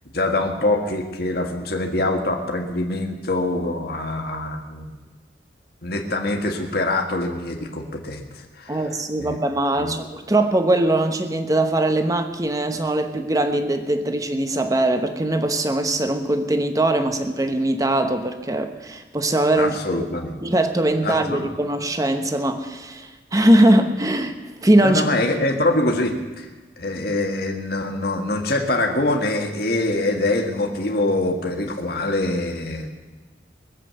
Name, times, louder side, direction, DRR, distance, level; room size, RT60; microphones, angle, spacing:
voice 1, 0.1-5.0 5.8-8.8 9.2-9.4 9.8-10.1 19.6-20.4 21.0-21.5 24.8-26.5 26.8-32.9, left 2 dB, 55° left, 2 dB, 1.7 m, -24 dB
voice 2, 8.7-20.0 20.4-25.0, right 1 dB, 20° right, 7 dB, 1.0 m, -21 dB
20.5 x 7.6 x 7.7 m, 1.3 s
head